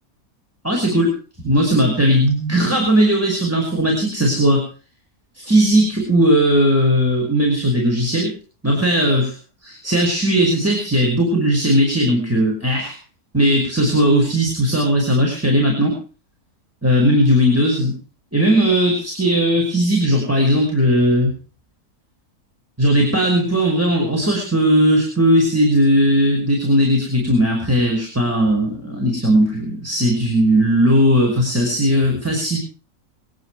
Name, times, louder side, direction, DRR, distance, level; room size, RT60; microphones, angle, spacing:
voice 1, 0.6-1.1 1.4-4.6 5.4-8.3 8.6-9.3 9.6-13.0 13.3-16.0 16.8-18.0 18.3-21.3 22.8-32.6, equal, 10° right, 0 dB, 5.6 m, -17 dB
26.5 x 9.9 x 4.8 m, 0.38 s
omnidirectional pair, 1.6 m